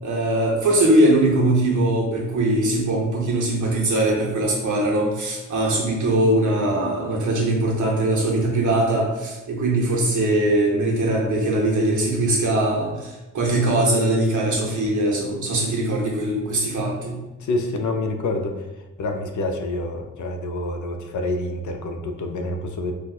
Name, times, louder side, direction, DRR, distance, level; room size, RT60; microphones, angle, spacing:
voice 1, 0.0-17.2, right 1 dB, 65° right, -2 dB, 0.8 m, -21 dB
voice 2, 17.4-18.7 19.0-22.9, left 2 dB, 65° left, 4 dB, 0.4 m, -27 dB
4.3 x 2.1 x 2.3 m, 1.0 s
wide cardioid pair, 150°, 32 cm